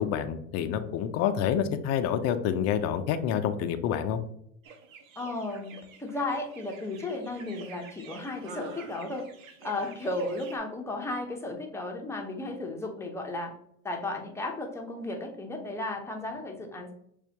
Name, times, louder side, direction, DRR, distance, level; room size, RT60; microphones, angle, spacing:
voice 1, 0.0-4.2, left 8 dB, 40° left, 8 dB, 0.5 m, -28 dB
sound 1, 4.6-10.6, right 3 dB, 80° right, 0.9 m, -47 dB
voice 2, 5.2-5.7 6.0-9.3 9.6-13.5 13.8-16.9, left 2 dB, 5° left, 2 dB, 0.7 m, -34 dB
6.6 x 2.5 x 2.8 m, 0.70 s
hypercardioid pair, 110°, 40 cm